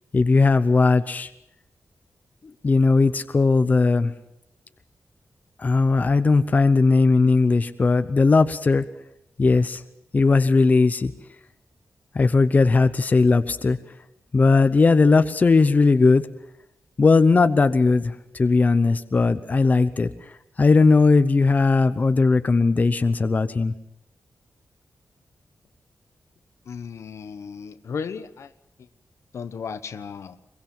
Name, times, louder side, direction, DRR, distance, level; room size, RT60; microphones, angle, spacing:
voice 1, 0.1-1.3 2.6-4.1 5.6-8.8 9.4-9.8 10.1-11.1 12.1-13.8 14.3-16.2 17.0-20.1 20.6-23.7, left 3 dB, 35° left, 0.8 m, -18 dB
voice 2, 26.7-28.5 29.3-30.4, left 6 dB, 70° left, 1.1 m, -35 dB
23.0 x 22.5 x 7.3 m
wide cardioid pair, 165°, 5 cm